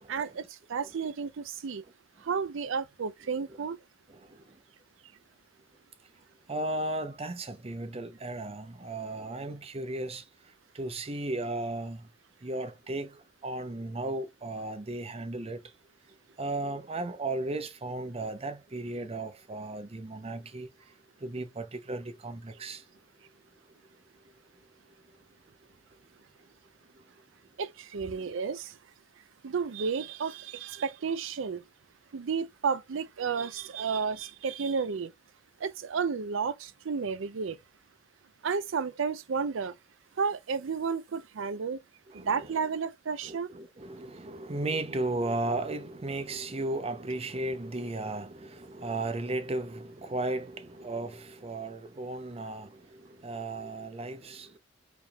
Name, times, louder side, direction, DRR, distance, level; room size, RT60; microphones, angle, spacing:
voice 1, 0.1-1.8 2.2-3.8 27.6-28.8 29.4-31.6 32.1-35.1 35.6-37.6 38.4-39.8 40.2-41.8 42.1-43.5, right 5 dB, 70° right, 0.5 m, -32 dB
voice 2, 4.1-4.6 6.5-10.2 10.7-12.1 12.4-15.6 16.4-20.7 21.2-22.8 42.1-42.6 43.2-54.6, right 2 dB, 30° right, 0.6 m, -35 dB
4.9 x 3.4 x 2.3 m
head